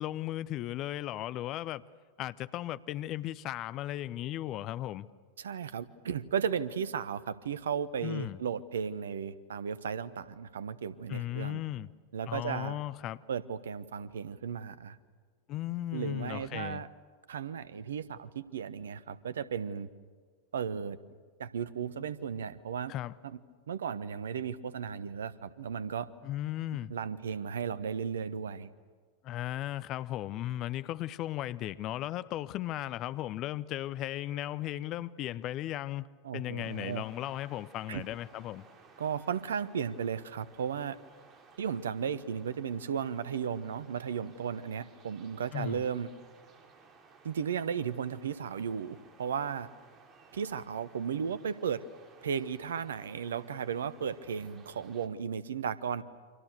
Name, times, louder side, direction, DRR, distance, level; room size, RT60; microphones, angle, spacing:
voice 1, 0.0-1.8 2.2-5.1 8.0-8.4 11.1-11.9 12.3-13.2 15.5-16.8 22.9-23.1 26.2-26.9 29.2-36.1 36.3-38.6 45.5-45.8, left 14 dB, 35° left, 0.7 m, -36 dB
voice 2, 5.4-11.6 12.1-12.8 13.3-15.0 15.9-16.9 17.3-19.9 20.5-21.0 21.4-22.9 23.2-23.4 23.7-26.1 26.9-28.7 36.2-37.0 37.9-38.0 39.0-41.0 41.6-46.1 47.2-49.7 50.3-51.8 52.2-56.0, right 7 dB, 65° right, 1.1 m, -35 dB
sound 1, 36.6-55.1, right 4 dB, 30° right, 3.0 m, -59 dB
29.5 x 25.5 x 6.7 m
figure-of-eight pair, 90°, 0 cm